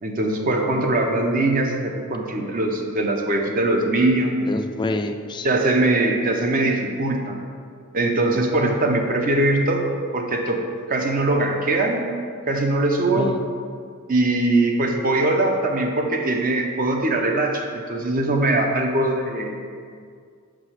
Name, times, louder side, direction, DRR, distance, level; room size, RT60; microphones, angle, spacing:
voice 1, 0.0-4.4 5.4-7.4 7.9-9.8 10.1-10.6 10.9-12.0 12.5-13.3 14.1-19.7, right 2 dB, 40° right, 3 dB, 0.7 m, -21 dB
voice 2, 4.5-5.5 13.2-13.4, left 2 dB, 20° left, 6 dB, 0.3 m, -27 dB
5.6 x 5.0 x 5.7 m, 2.2 s
head